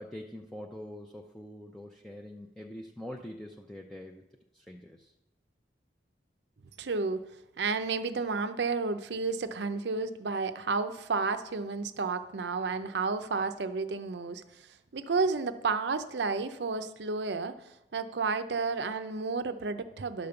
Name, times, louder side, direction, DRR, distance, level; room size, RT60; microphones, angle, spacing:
voice 1, 0.0-4.2 4.5-5.1, left 1 dB, 5° left, 0 dB, 0.5 m, -44 dB
voice 2, 6.8-7.2 7.6-17.5 17.9-20.3, right 4 dB, 70° right, 10 dB, 0.6 m, -31 dB
11.5 x 5.2 x 6.9 m, 0.91 s
head